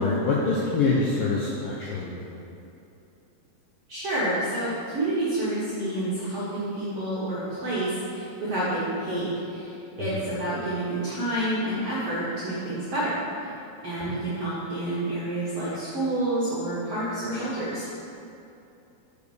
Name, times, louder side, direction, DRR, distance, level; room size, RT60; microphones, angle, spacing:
voice 1, 0.0-2.3 10.0-10.3 14.0-14.2, left 3 dB, 80° left, -5 dB, 2.1 m, -26 dB
voice 2, 3.9-9.7 10.0-13.2 13.8-17.8, right 1 dB, 65° right, -10 dB, 1.5 m, -28 dB
6.9 x 5.1 x 6.4 m, 2.8 s
omnidirectional pair, 5.0 m